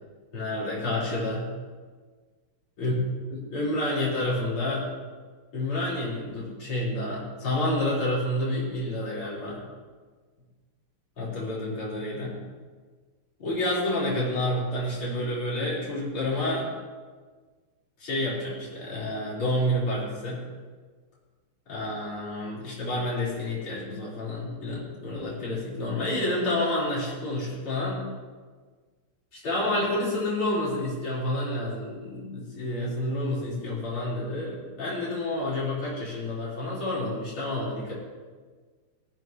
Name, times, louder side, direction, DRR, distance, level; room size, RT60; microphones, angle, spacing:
voice 1, 0.3-1.5 2.8-2.9 3.3-4.9 5.5-9.6 11.2-12.3 13.4-16.7 18.0-20.4 21.7-28.0 29.3-37.9, left 1 dB, 75° left, -8 dB, 5.4 m, -29 dB
19.0 x 14.0 x 3.1 m, 1.5 s
omnidirectional pair, 2.4 m